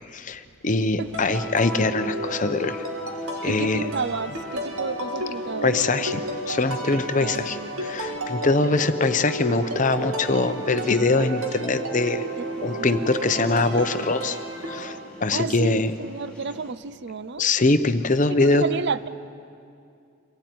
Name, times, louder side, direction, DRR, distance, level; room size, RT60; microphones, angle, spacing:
voice 1, 0.1-2.9 3.4-3.8 5.6-6.2 6.5-12.2 12.6-14.9 15.2-15.9 17.4-18.6, left 3 dB, 35° left, 10 dB, 0.8 m, -23 dB
voice 2, 0.8-1.2 3.4-5.7 7.2-7.7 12.4-12.9 15.3-17.5 18.3-19.1, right 5 dB, 55° right, 15 dB, 0.6 m, -31 dB
sound 1, 1.0-16.7, right 1 dB, 5° left, 3.7 m, -48 dB
sound 2, 1.1-14.9, right 1 dB, 85° right, 2.9 m, -32 dB
25.0 x 16.5 x 9.3 m, 2.5 s
head